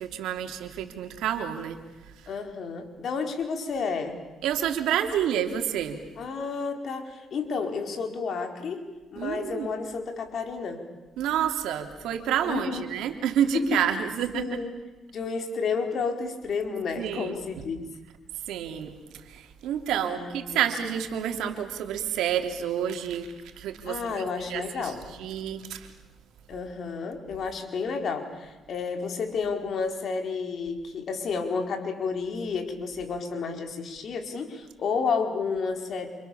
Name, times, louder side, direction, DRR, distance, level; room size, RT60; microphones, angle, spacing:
voice 1, 0.0-1.8 4.4-6.0 9.2-9.7 11.2-14.6 16.9-17.4 18.5-24.2 24.5-24.9 25.2-25.9, right 9 dB, 85° right, 5 dB, 3.2 m, -29 dB
voice 2, 2.3-4.2 6.2-8.9 9.1-10.8 12.5-12.8 13.7-13.8 14.3-14.7 15.1-17.8 20.0-20.6 23.8-25.0 26.5-36.1, left 5 dB, 60° left, 4 dB, 4.9 m, -31 dB
29.0 x 28.5 x 7.2 m, 1.2 s
cardioid pair, 90°, 0 cm